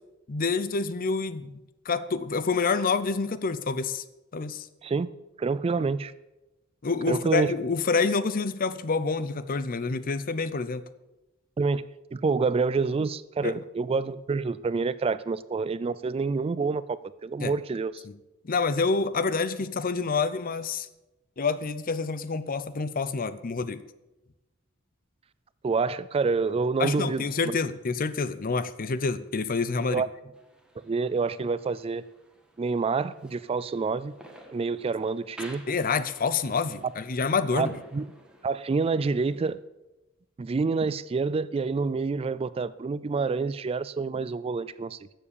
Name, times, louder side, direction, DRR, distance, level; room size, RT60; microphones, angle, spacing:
voice 1, 0.3-1.5 1.9-4.0 4.3-4.7 6.8-10.8 13.4-13.5 17.4-17.5 18.1-18.2 18.5-20.9 21.4-23.8 26.8-30.0 35.7-37.7, left 4 dB, 45° left, 15 dB, 0.6 m, -27 dB
voice 2, 5.4-6.1 7.1-7.5 11.6-11.9 12.1-18.0 25.6-27.6 29.9-30.1 30.8-32.0 32.6-34.1 34.5-35.6 37.5-37.7 37.9-38.0 38.4-39.6 40.4-45.0, right 4 dB, 30° right, 17 dB, 0.3 m, -27 dB
sound 1, 30.3-39.5, equal, 5° right, 1.6 m, -52 dB
13.5 x 7.4 x 6.9 m, 1.0 s
head